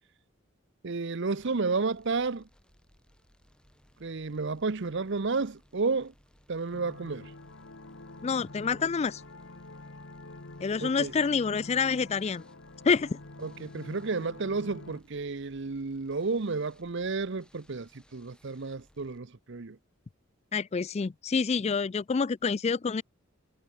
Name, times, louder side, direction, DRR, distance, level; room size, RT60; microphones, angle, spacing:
voice 1, 0.8-2.5 4.0-6.1 6.5-7.3 10.8-11.1 13.4-19.8, right 4 dB, 60° right, 0.8 m, -31 dB
sound 1, 1.4-19.2, equal, 5° left, 4.0 m, -63 dB
sound 2, 6.7-15.0, left 2 dB, 60° left, 1.8 m, -47 dB
voice 2, 8.2-9.2 10.6-12.4 12.9-13.2 20.5-23.0, left 5 dB, 30° left, 0.4 m, -27 dB
head